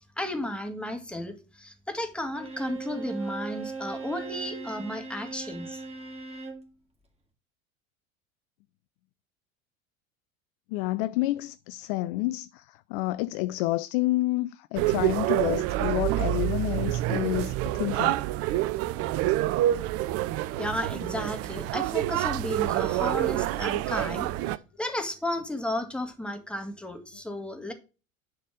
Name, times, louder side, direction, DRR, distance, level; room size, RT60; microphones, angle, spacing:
voice 1, 0.2-5.8 20.6-27.7, left 1 dB, ahead, 2.0 m, -33 dB
Bowed string instrument, 2.3-6.7, right 4 dB, 15° right, 2.4 m, -39 dB
voice 2, 10.7-18.2, left 18 dB, 40° left, 0.4 m, -29 dB
sound 1, 14.8-24.6, right 15 dB, 35° right, 0.6 m, -27 dB
10.5 x 4.1 x 6.3 m
figure-of-eight pair, 80°, 41 cm